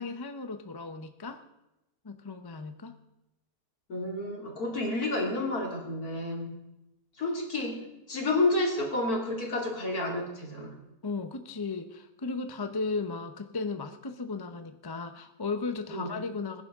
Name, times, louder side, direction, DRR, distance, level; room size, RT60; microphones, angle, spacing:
voice 1, 0.0-1.4 2.0-3.0 11.0-16.6, left 4 dB, 20° left, 8 dB, 0.6 m, -35 dB
voice 2, 3.9-6.5 7.2-7.8 8.1-10.7 15.9-16.1, left 2 dB, 75° left, 0 dB, 3.2 m, -30 dB
21.5 x 10.5 x 3.7 m, 0.93 s
omnidirectional pair, 1.6 m